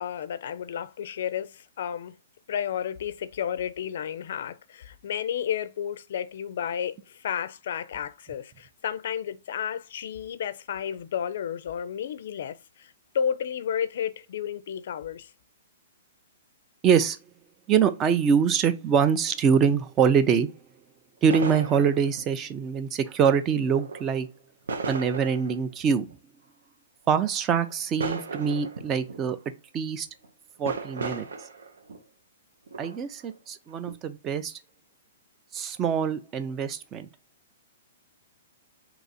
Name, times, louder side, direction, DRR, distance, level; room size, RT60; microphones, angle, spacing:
voice 1, 0.0-2.1 2.5-15.3, left 8 dB, 65° left, 0.4 m, -32 dB
voice 2, 16.8-17.2 17.7-20.5 21.2-24.3 24.9-26.1 27.1-29.4 29.7-30.1 30.6-31.3 32.8-34.6 35.5-37.1, right 7 dB, 25° right, 0.4 m, -24 dB
sound 1, 21.3-22.3 23.7-24.2 24.7-25.6 26.1-26.2 27.7-29.3 30.0-30.3 30.7-32.0 32.7-33.4 33.9-34.0, right 4 dB, 85° right, 0.6 m, -35 dB
2.9 x 2.5 x 4.0 m
hypercardioid pair, 140°, 0 cm